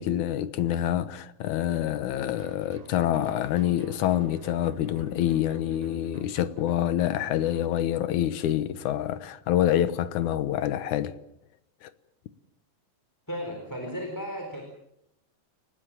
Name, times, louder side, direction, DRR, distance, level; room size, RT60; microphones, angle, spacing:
voice 1, 0.0-11.2 11.8-11.9, left 11 dB, 70° left, 2.3 m, -26 dB
sound 1, 2.2-7.8, right 6 dB, 85° right, 4.6 m, -48 dB
voice 2, 13.3-14.6, equal, 5° left, 4.1 m, -34 dB
29.0 x 18.5 x 7.5 m
omnidirectional pair, 3.9 m